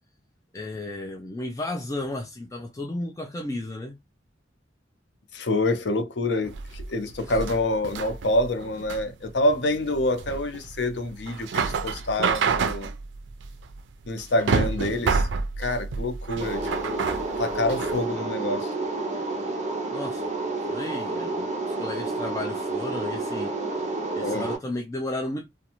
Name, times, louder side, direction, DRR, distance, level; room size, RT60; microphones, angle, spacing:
voice 1, 0.5-4.0 7.3-7.4 19.9-23.5 24.1-25.5, left 2 dB, 20° left, 0.3 m, -34 dB
voice 2, 5.3-12.9 14.1-15.3 15.6-17.1 17.4-18.7 24.2-24.4, left 1 dB, 70° left, 0.6 m, -27 dB
sound 1, 6.4-18.0, right 5 dB, 85° right, 0.4 m, -29 dB
sound 2, 16.4-24.6, right 3 dB, 40° right, 0.6 m, -30 dB
2.5 x 2.2 x 2.9 m
head